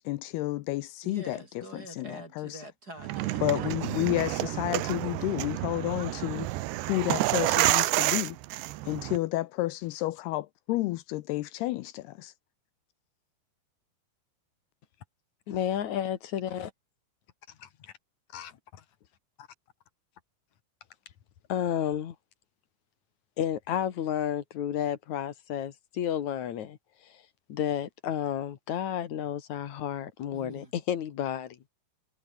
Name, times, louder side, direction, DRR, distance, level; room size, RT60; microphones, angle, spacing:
voice 1, 0.0-2.6 3.4-6.5 6.9-8.4 8.9-12.3, left 18 dB, 80° left, 2.4 m, -31 dB
voice 2, 1.0-4.3 30.3-30.7, right 1 dB, 20° right, 7.3 m, -46 dB
sound 1, 3.0-9.2, right 17 dB, 75° right, 2.8 m, -29 dB
voice 3, 15.5-16.7 17.6-17.9 18.3-18.8 21.5-22.2 23.4-26.8 27.0-27.2 27.5-31.6, left 10 dB, 55° left, 2.2 m, -32 dB
omnidirectional pair, 5.2 m